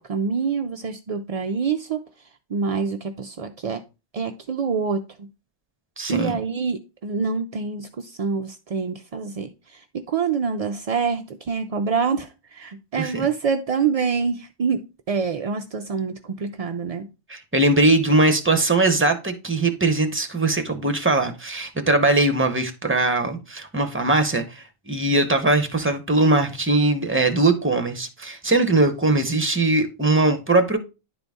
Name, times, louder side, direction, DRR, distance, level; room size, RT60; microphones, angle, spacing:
voice 1, 0.0-2.0 2.5-3.8 4.1-5.0 6.1-14.8 15.1-17.1, right 5 dB, 65° right, 0.3 m, -26 dB
voice 2, 6.0-6.4 13.0-13.3 17.3-30.8, right 2 dB, 10° right, 0.8 m, -20 dB
10.5 x 4.0 x 3.5 m
omnidirectional pair, 1.2 m